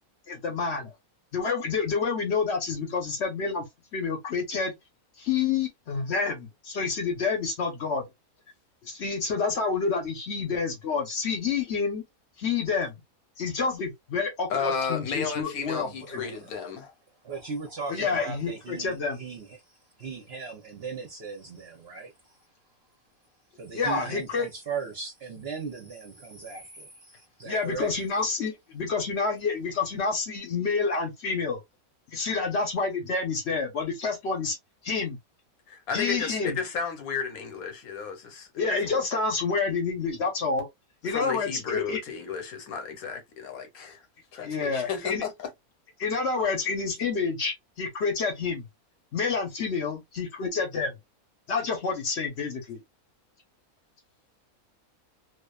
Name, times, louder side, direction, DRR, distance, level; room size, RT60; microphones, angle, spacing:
voice 1, 0.3-0.9 1.3-3.7 3.9-4.7 5.2-8.0 8.8-12.0 12.4-12.9 13.4-15.9 16.1-16.2 17.9-19.2 23.7-24.5 27.4-31.6 32.1-34.6 34.8-35.2 35.9-36.6 38.6-40.7 41.0-42.0 44.4-45.2 46.0-48.6 49.1-51.0 51.5-52.8, left 4 dB, 55° left, 0.9 m, -28 dB
voice 2, 14.5-16.9 35.7-39.0 41.1-44.1 44.3-45.5 47.0-47.1, left 5 dB, 75° left, 1.2 m, -33 dB
voice 3, 15.8-16.7 17.2-22.5 23.5-27.9, right 5 dB, 55° right, 0.7 m, -38 dB
2.5 x 2.4 x 2.2 m
omnidirectional pair, 1.6 m